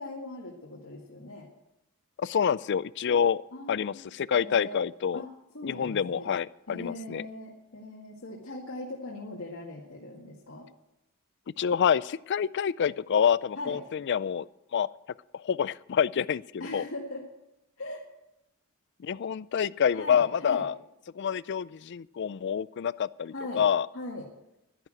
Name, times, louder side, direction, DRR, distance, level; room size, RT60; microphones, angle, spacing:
voice 1, 0.0-1.5 3.5-4.1 4.3-4.8 5.1-6.3 6.7-10.7 13.6-13.8 16.6-17.3 17.8-18.0 19.9-20.6 23.3-23.6 23.9-24.3, left 2 dB, 80° left, -4 dB, 2.0 m, -40 dB
voice 2, 2.2-3.4 3.7-5.2 5.6-7.2 11.6-14.4 14.7-14.9 15.3-16.8 19.0-20.7 21.2-23.9, left 7 dB, 55° left, 19 dB, 0.4 m, -27 dB
11.5 x 10.5 x 7.6 m, 0.90 s
head